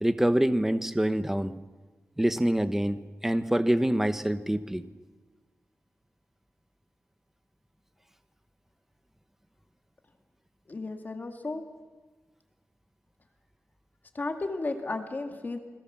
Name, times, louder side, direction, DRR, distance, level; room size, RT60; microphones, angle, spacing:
voice 1, 0.0-1.5 2.2-4.8, right 1 dB, 5° right, 11 dB, 1.0 m, -26 dB
voice 2, 10.7-11.6 14.1-15.6, left 3 dB, 35° left, 5 dB, 2.0 m, -33 dB
28.0 x 21.5 x 7.4 m, 1.3 s
wide cardioid pair, 150°, 5 cm